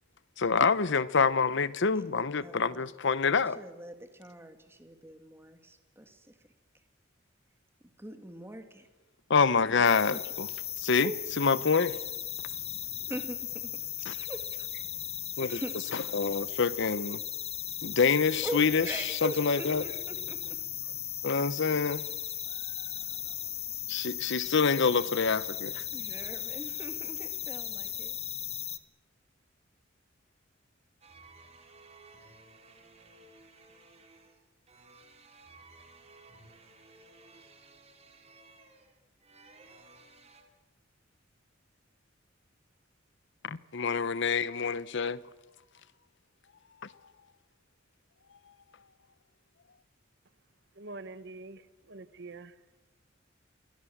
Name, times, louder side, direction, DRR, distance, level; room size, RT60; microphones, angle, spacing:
voice 1, 0.4-3.6 9.3-12.0 12.4-12.5 14.0-14.2 15.4-17.2 17.8-20.0 21.2-22.0 22.5-23.0 23.9-25.9 43.4-45.2 46.8-47.1 48.3-48.9, left 5 dB, 65° left, 0.8 m, -27 dB
voice 2, 2.4-2.8 3.6-6.3 8.0-8.9 9.8-10.2 11.0-11.2 13.1-13.4 14.1-14.7 15.4-15.7 18.4-20.4 22.0-22.1 25.9-28.1, right 1 dB, 15° right, 2.4 m, -41 dB
sound 1, 9.8-28.8, left 10 dB, 35° left, 1.3 m, -37 dB
sound 2, 31.0-40.4, right 3 dB, 35° right, 3.5 m, -56 dB
voice 3, 50.7-52.6, right 3 dB, 60° right, 1.3 m, -45 dB
28.0 x 22.5 x 7.3 m
head